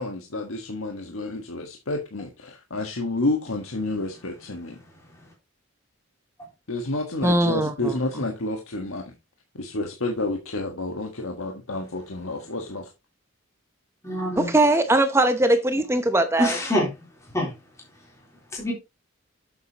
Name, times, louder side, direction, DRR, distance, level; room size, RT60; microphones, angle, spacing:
voice 1, 0.0-4.8 6.7-9.0 9.5-12.9, left 2 dB, 75° left, 1.5 m, -30 dB
voice 2, 7.2-8.0 14.4-16.6, right 1 dB, 10° right, 0.8 m, -20 dB
voice 3, 14.0-14.5 16.4-17.1 17.3-17.5 18.5-18.7, left 1 dB, 15° left, 3.6 m, -25 dB
9.2 x 8.0 x 2.9 m
head